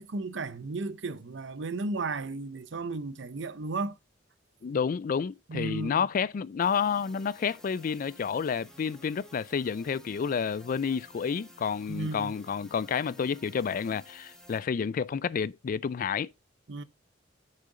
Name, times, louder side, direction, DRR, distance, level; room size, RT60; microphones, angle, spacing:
voice 1, 0.0-4.0 5.5-6.1 11.9-12.3 16.7-16.8, right 3 dB, 70° right, 0.7 m, -34 dB
voice 2, 4.6-16.3, left 6 dB, 45° left, 0.3 m, -30 dB
sound 1, 6.6-14.6, equal, 5° left, 1.2 m, -53 dB
7.5 x 6.6 x 3.8 m
head